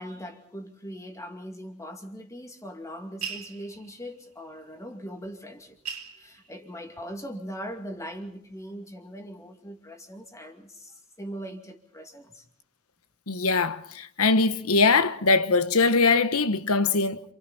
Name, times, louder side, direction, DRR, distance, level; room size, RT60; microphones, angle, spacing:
voice 1, 0.0-12.5, equal, 15° left, 2.5 m, -40 dB
sound 1, 3.2-4.2 5.2-5.3 5.6-7.3 7.7-8.4, right 7 dB, 80° right, 2.7 m, -39 dB
voice 2, 13.3-17.2, left 4 dB, 75° left, 1.3 m, -22 dB
28.5 x 27.5 x 4.3 m
head